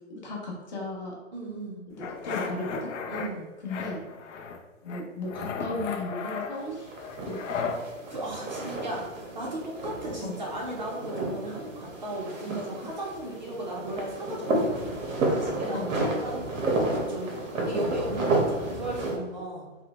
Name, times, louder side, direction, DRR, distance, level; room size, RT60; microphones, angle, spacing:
voice 1, 0.1-1.2 1.9-2.9 3.6-4.0 4.8-6.9 7.3-7.7 10.2-10.3 12.5-12.9 15.7-15.9, left 2 dB, 35° left, -2 dB, 0.7 m, -36 dB
voice 2, 1.3-1.8 3.1-3.5 8.1-14.8 15.1-19.6, right 1 dB, 35° right, -3 dB, 0.5 m, -36 dB
sound 1, 2.0-3.3 3.7-4.6 4.9-7.8, left 5 dB, 70° left, 0.5 m, -35 dB
sound 2, 6.6-19.2, right 2 dB, 85° right, 1.0 m, -31 dB
3.4 x 2.0 x 2.9 m, 1.1 s
hypercardioid pair, 165°, 38 cm